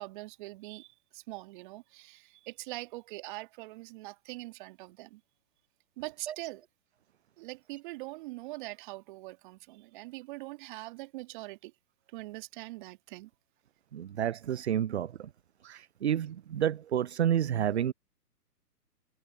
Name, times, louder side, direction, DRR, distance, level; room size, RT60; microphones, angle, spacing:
voice 1, 0.0-5.2 6.0-6.6 7.4-11.7 12.1-13.3, right 21 dB, 30° right, 1.8 m, -43 dB
voice 2, 13.9-15.3 15.6-17.9, right 10 dB, 45° right, 0.5 m, -30 dB
figure-of-eight pair, 130°, 49 cm